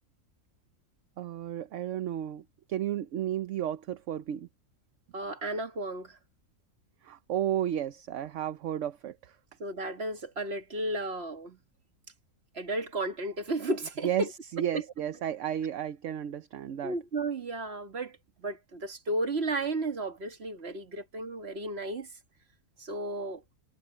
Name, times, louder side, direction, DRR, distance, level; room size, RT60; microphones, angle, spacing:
voice 1, 1.2-4.5 7.0-9.4 14.0-17.0, right 11 dB, 60° right, 1.0 m, -33 dB
voice 2, 5.1-6.2 9.6-11.6 12.5-14.3 14.7-14.8 16.8-22.1 22.8-23.4, right 2 dB, 45° right, 1.8 m, -33 dB
omnidirectional pair, 1.6 m